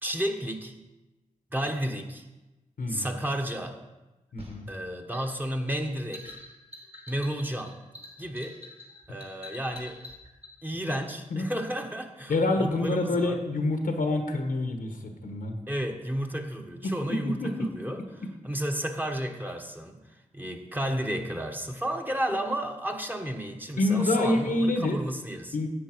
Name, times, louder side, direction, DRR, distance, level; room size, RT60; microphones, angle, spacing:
voice 1, 0.0-0.7 1.5-2.3 2.9-3.8 4.7-6.4 7.1-7.8 8.2-8.6 9.1-10.0 10.6-13.4 15.7-18.0 18.4-20.0 20.3-25.6, equal, 15° right, 4 dB, 1.3 m, -32 dB
voice 2, 2.8-3.1 4.3-4.7 11.3-11.5 12.3-15.6 16.8-17.7 23.8-25.0 25.5-25.7, left 2 dB, 80° left, 5 dB, 1.3 m, -27 dB
sound 1, 4.4-10.5, left 1 dB, 45° right, 3.0 m, -46 dB
10.0 x 8.0 x 4.6 m, 1.1 s
cardioid pair, 45°, 14 cm